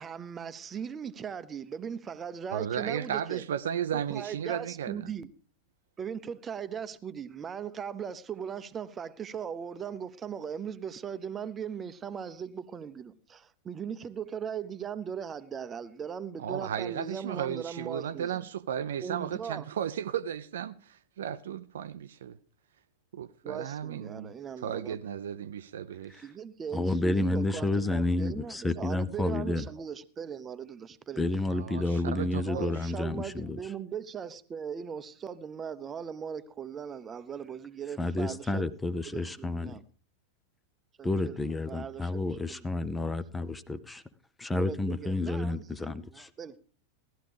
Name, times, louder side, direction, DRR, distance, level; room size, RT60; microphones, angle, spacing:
voice 1, 0.0-3.4 4.1-5.3 6.0-18.4 19.0-19.7 23.4-25.0 26.2-31.2 32.4-38.7 39.1-39.8 41.0-41.4 41.7-42.8 44.5-46.6, right 7 dB, 20° right, 0.8 m, -39 dB
voice 2, 2.5-5.0 16.4-22.4 23.1-24.4 24.6-26.2 31.5-32.9, right 9 dB, 60° right, 0.5 m, -35 dB
voice 3, 26.7-29.7 31.2-33.6 38.0-39.8 41.0-44.0 44.4-46.3, left 2 dB, 10° left, 0.6 m, -30 dB
17.0 x 12.5 x 3.4 m
figure-of-eight pair, 90°, 0 cm